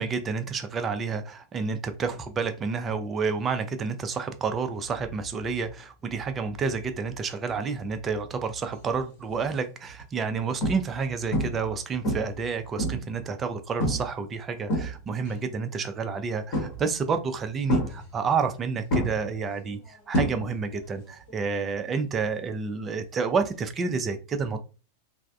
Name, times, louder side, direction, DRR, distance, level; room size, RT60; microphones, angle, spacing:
voice 1, 0.0-24.6, right 5 dB, 25° right, 8 dB, 0.4 m, -29 dB
sound 1, 9.0-9.3 9.9-10.0 10.6-11.0 11.3-11.7 12.0-13.2 13.8-14.1 14.5-15.3 16.5-17.0 17.7-18.6 18.9-20.8 21.0-21.5 23.5-23.6, equal, 45° left, 0.9 m, -28 dB
3.3 x 2.0 x 2.4 m, 0.34 s
figure-of-eight pair, 90°, 0 cm